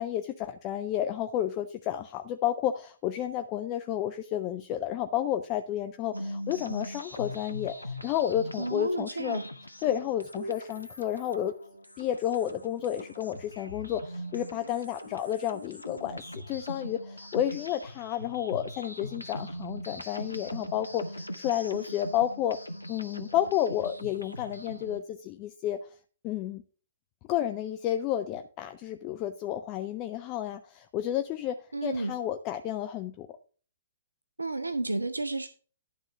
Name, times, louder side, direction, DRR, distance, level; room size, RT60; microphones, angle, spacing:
voice 1, 0.0-9.4 9.8-11.6 12.0-22.6 22.9-25.8 26.2-26.6 27.3-33.3, left 11 dB, 30° left, 0.5 m, -31 dB
sound 1, 6.1-25.0, equal, 85° left, 0.7 m, -41 dB
voice 2, 8.6-9.4 31.7-32.2 34.4-35.5, right 2 dB, 80° right, 0.5 m, -31 dB
11.0 x 3.8 x 5.6 m
figure-of-eight pair, 120°, 0 cm